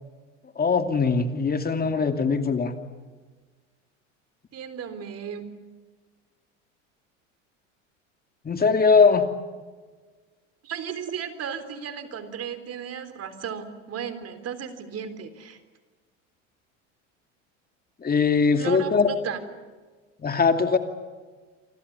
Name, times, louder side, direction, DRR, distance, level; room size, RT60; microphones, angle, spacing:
voice 1, 0.6-2.7 8.4-9.2 18.0-19.1 20.2-20.8, left 5 dB, 25° left, 6 dB, 2.5 m, -21 dB
voice 2, 4.5-5.5 10.6-15.6 18.6-19.4, right 7 dB, 40° right, 10 dB, 3.8 m, -35 dB
29.0 x 24.5 x 7.0 m, 1.4 s
hypercardioid pair, 85°, 38 cm